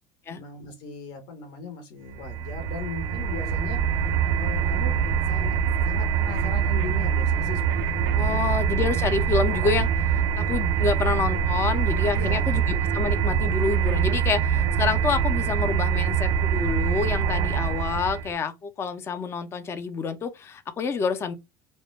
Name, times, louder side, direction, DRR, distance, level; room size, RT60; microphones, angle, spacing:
voice 1, 0.3-3.8 4.3-5.0 5.3-5.6 5.8-8.5 12.1-12.6, left 5 dB, 70° left, 0.7 m, -38 dB
sound 1, 2.1-18.3, right 7 dB, 80° right, 0.4 m, -24 dB
voice 2, 8.1-21.4, left 5 dB, 25° left, 0.4 m, -28 dB
2.1 x 2.1 x 3.1 m
cardioid pair, 130°, 10 cm